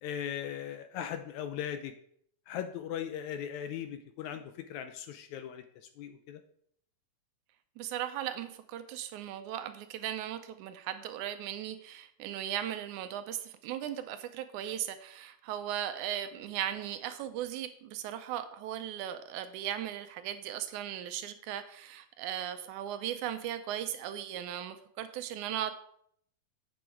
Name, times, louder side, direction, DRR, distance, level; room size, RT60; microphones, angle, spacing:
voice 1, 0.0-1.9 2.5-5.6 6.0-6.4, left 9 dB, 80° left, 8 dB, 1.8 m, -38 dB
voice 2, 7.8-25.7, right 11 dB, 80° right, 9 dB, 1.9 m, -37 dB
8.6 x 6.2 x 4.5 m, 0.66 s
omnidirectional pair, 3.7 m